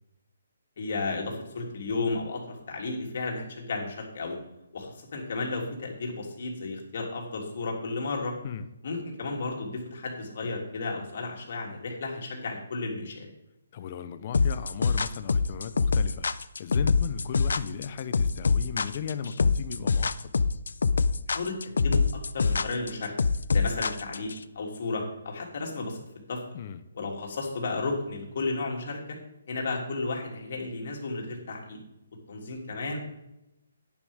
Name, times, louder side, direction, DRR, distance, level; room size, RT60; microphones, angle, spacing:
voice 1, 0.8-4.4 4.7-8.3 8.8-13.3 21.3-23.1 23.5-24.3 24.5-26.4 26.9-29.2 29.5-31.8 32.3-33.0, left 3 dB, 55° left, 0 dB, 3.4 m, -33 dB
voice 2, 13.7-20.3 26.5-26.8, left 7 dB, 40° left, 11 dB, 0.9 m, -36 dB
sound 1, 14.3-24.4, left 4 dB, 75° left, 0.5 m, -24 dB
10.5 x 10.5 x 3.7 m, 0.89 s
hypercardioid pair, 155°, 0 cm